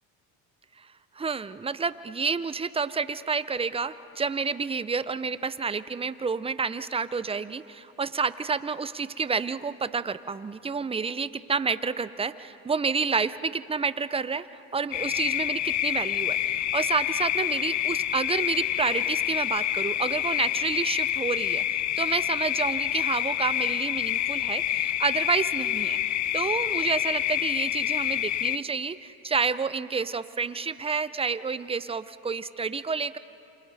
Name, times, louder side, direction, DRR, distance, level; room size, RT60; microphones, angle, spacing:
voice 1, 1.2-14.5 14.7-26.0 26.3-33.2, right 5 dB, 15° right, 15 dB, 0.6 m, -29 dB
sound 1, 14.9-28.6, left 12 dB, 40° left, 0.6 m, -27 dB
28.0 x 28.0 x 4.1 m, 2.9 s
supercardioid pair, 90°, 44 cm